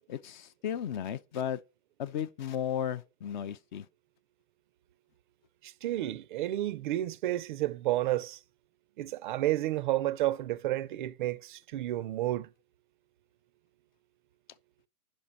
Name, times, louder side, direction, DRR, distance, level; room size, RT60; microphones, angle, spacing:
voice 1, 0.1-1.6 2.0-3.9, left 9 dB, 35° left, 0.4 m, -34 dB
voice 2, 5.6-8.4 9.0-12.5, right 15 dB, 35° right, 0.4 m, -31 dB
5.9 x 5.1 x 5.4 m
figure-of-eight pair, 105°, 44 cm